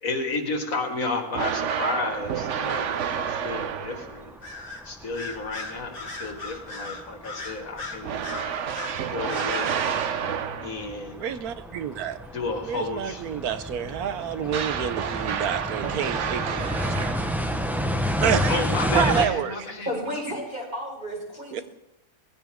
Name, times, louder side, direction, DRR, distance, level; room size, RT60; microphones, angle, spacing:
voice 1, 0.0-4.3 4.8-8.2 9.1-10.0 10.6-11.2 12.3-13.2 14.4-14.5 18.5-19.9, left 3 dB, 65° left, 4 dB, 2.3 m, -31 dB
sound 1, 1.3-4.3 8.0-10.9 14.5-17.6, right 7 dB, 60° right, 1.1 m, -29 dB
sound 2, 2.1-19.3, equal, ahead, 0.9 m, -32 dB
Bird vocalization bird call bird song, 4.4-4.8 5.1-9.0 9.3-9.5, left 3 dB, 40° left, 2.0 m, -37 dB
voice 2, 11.2-12.2 12.6-17.1 18.2-18.6 18.9-19.5 21.5-21.6, right 8 dB, 85° right, 12 dB, 1.4 m, -28 dB
voice 3, 19.8-21.6, equal, 35° right, -2 dB, 5.3 m, -32 dB
20.5 x 16.0 x 3.7 m, 0.89 s
omnidirectional pair, 1.5 m